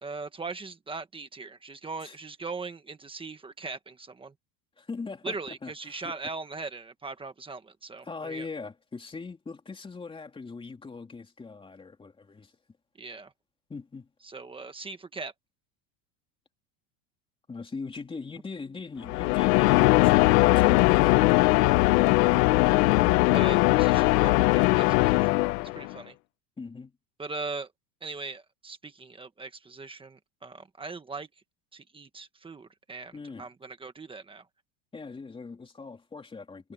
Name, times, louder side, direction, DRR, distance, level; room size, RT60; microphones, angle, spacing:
voice 1, 0.0-4.3 5.2-8.5 13.0-13.3 14.2-15.3 23.3-25.4 25.7-26.2 27.2-27.7 28.0-31.3 31.7-34.4, right 3 dB, 10° right, 1.4 m, -40 dB
voice 2, 4.8-6.1 8.0-12.5 13.7-14.1 17.5-22.8 26.6-27.0 33.1-33.5 34.9-36.7, left 4 dB, 10° left, 3.0 m, -41 dB
sound 1, 19.1-25.9, left 22 dB, 70° left, 0.9 m, -20 dB
supercardioid pair, 165°, 49 cm